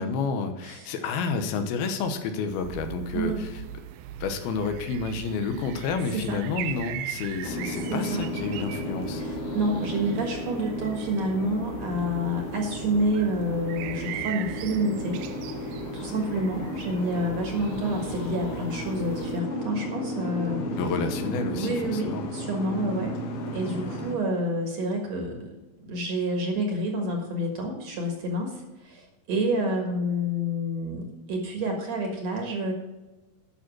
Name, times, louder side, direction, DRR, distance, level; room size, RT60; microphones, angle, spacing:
voice 1, 0.0-3.6 4.2-9.2 20.8-22.2, left 5 dB, 80° left, 7 dB, 2.9 m, -30 dB
voice 2, 0.6-0.9 3.1-3.4 6.1-6.4 7.9-8.2 9.2-15.2 15.9-20.6 21.5-23.2 23.5-25.5 25.8-32.7, right 1 dB, 55° right, 2 dB, 2.4 m, -28 dB
sound 1, 2.5-19.4, right 10 dB, 90° right, 2.5 m, -40 dB
Boat Water vehicle, 7.4-24.2, left 1 dB, 65° left, 2.3 m, -34 dB
10.0 x 6.4 x 6.1 m, 1.1 s
omnidirectional pair, 4.3 m